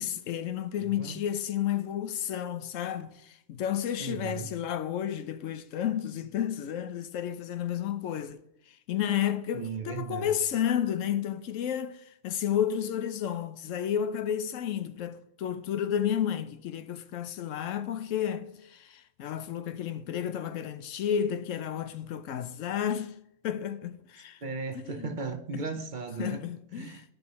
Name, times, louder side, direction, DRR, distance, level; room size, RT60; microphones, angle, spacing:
voice 1, 0.0-8.4 8.7-23.1 23.4-24.4 24.8-25.2 25.5-25.6 26.2-27.0, left 9 dB, 90° left, 1.0 m, -32 dB
voice 2, 4.0-4.5 9.5-10.3 24.4-26.4 26.8-27.0, right 4 dB, 45° right, 0.8 m, -36 dB
13.0 x 5.1 x 3.1 m
omnidirectional pair, 1.3 m